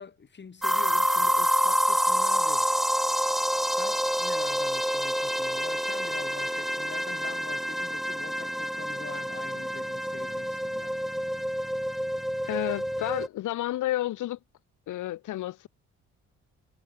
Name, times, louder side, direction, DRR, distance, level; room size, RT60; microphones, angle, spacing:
voice 1, 0.0-2.7 3.7-11.0, left 5 dB, 35° left, 3.8 m, -44 dB
sound 1, 0.6-13.3, equal, ahead, 0.5 m, -27 dB
voice 2, 12.5-14.4 14.9-15.7, left 15 dB, 80° left, 1.8 m, -31 dB
cardioid pair, 90°, 30 cm